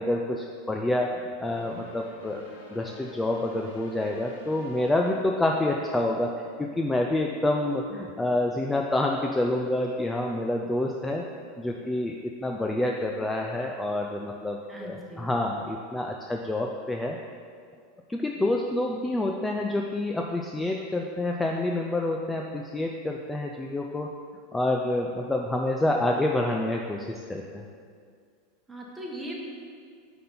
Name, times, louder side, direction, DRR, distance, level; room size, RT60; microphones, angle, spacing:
voice 1, 0.0-2.4 2.7-11.3 11.6-17.2 18.1-24.1 24.5-27.6, left 1 dB, 10° left, 1 dB, 0.4 m, -28 dB
sound 1, 1.4-5.9, left 1 dB, 90° left, 1.2 m, -48 dB
voice 2, 14.7-15.3 28.7-29.3, right 1 dB, 10° right, -2 dB, 1.3 m, -39 dB
5.6 x 3.9 x 5.7 m, 2.2 s
hypercardioid pair, 105°, 0 cm